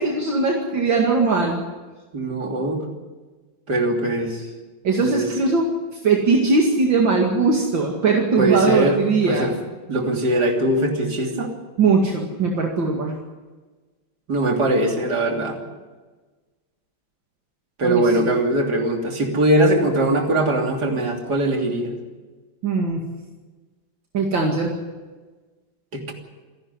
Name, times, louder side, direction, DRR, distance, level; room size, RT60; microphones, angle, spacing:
voice 1, 0.0-1.6 4.8-5.7 6.0-9.5 11.8-13.1 17.8-18.3 22.6-23.0 24.1-24.7, right 4 dB, 70° right, 0 dB, 2.9 m, -20 dB
voice 2, 2.1-2.9 3.7-4.5 5.0-5.3 8.4-9.5 9.9-11.5 14.3-15.6 17.8-21.9 25.9-26.1, right 1 dB, 55° right, 2 dB, 3.7 m, -21 dB
27.5 x 11.5 x 9.8 m, 1.3 s
omnidirectional pair, 2.2 m